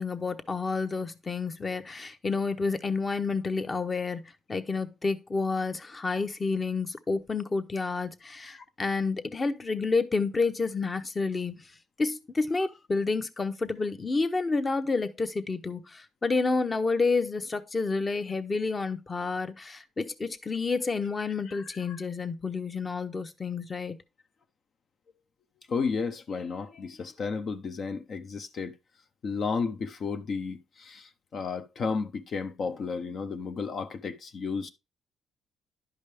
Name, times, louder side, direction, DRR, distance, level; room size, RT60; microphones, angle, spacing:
voice 1, 0.0-11.6 12.0-24.0, left 4 dB, 30° left, 0.9 m, -29 dB
voice 2, 21.5-22.0 25.7-28.7 29.2-34.7, left 5 dB, 55° left, 0.8 m, -33 dB
11.0 x 5.2 x 3.4 m
cardioid pair, 90°, 0 cm